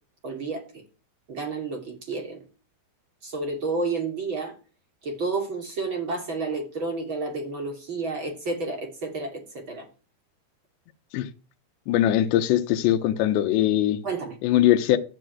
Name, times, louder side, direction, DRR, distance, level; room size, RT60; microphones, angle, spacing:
voice 1, 0.2-0.6 1.3-2.4 3.2-4.5 5.0-9.9 14.0-14.4, right 3 dB, 30° right, 3.3 m, -30 dB
voice 2, 11.9-14.0 14.4-15.0, left 12 dB, 80° left, 3.2 m, -21 dB
14.0 x 6.2 x 9.3 m
omnidirectional pair, 5.2 m